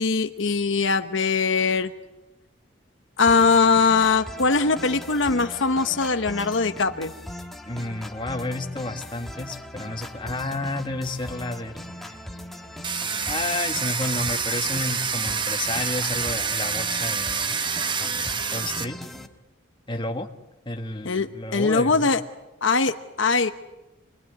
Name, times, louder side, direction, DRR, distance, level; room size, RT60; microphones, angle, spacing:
voice 1, 0.0-1.9 3.2-7.1 21.0-22.2 22.6-23.5, left 4 dB, 70° left, 8 dB, 1.1 m, -21 dB
sound 1, 3.3-19.3, left 1 dB, ahead, 1.6 m, -39 dB
voice 2, 7.7-12.2 13.3-17.6 18.0-19.0 19.9-20.3 20.7-22.1, left 2 dB, 25° left, 4 dB, 1.7 m, -31 dB
Domestic sounds home sounds, 12.8-18.8, right 6 dB, 25° right, 1.0 m, -27 dB
28.0 x 21.5 x 9.5 m, 1.1 s
head